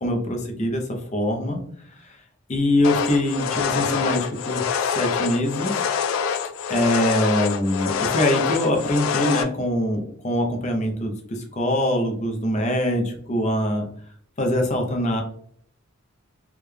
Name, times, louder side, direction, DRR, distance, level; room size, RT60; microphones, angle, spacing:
voice 1, 0.0-0.8 1.1-1.6 2.5-5.7 6.7-13.9 14.4-15.2, left 1 dB, 35° left, 2 dB, 0.6 m, -23 dB
sound 1, 2.8-9.4, left 7 dB, 80° left, 0.3 m, -25 dB
3.5 x 3.2 x 2.2 m, 0.63 s
head